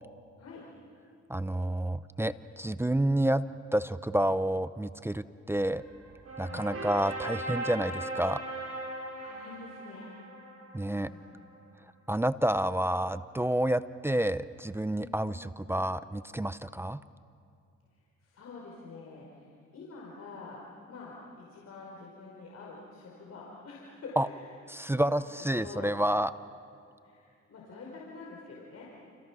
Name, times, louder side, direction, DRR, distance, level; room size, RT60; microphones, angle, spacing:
voice 1, 1.3-3.4 3.7-5.8 6.4-8.4 10.7-11.1 12.1-17.0 24.2-24.3 24.7-26.3, right 1 dB, 10° right, 14 dB, 0.6 m, -29 dB
sound 1, 5.5-11.4, right 2 dB, 50° right, 7.1 m, -39 dB
voice 2, 9.2-10.1 10.9-11.2 14.9-15.2 18.2-20.6 20.9-24.5 24.9-25.1 25.5-26.0 27.0-28.9, left 3 dB, 55° left, -3 dB, 5.0 m, -46 dB
29.5 x 29.0 x 6.1 m, 2.4 s
cardioid pair, 90°, 30 cm